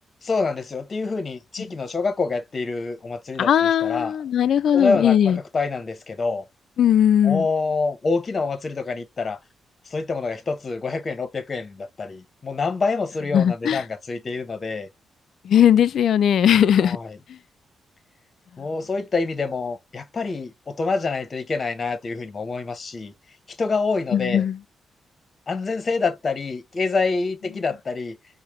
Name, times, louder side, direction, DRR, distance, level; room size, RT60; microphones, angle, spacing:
voice 1, 0.2-4.1 4.7-6.5 7.2-9.4 9.9-14.9 16.8-17.2 18.6-23.1 23.5-24.5 25.5-28.2, left 4 dB, 45° left, 1.0 m, -26 dB
voice 2, 3.4-5.4 6.8-7.5 13.3-13.8 15.4-17.0 24.1-24.6, left 9 dB, 70° left, 0.3 m, -18 dB
4.7 x 2.2 x 3.2 m
supercardioid pair, 45°, 0 cm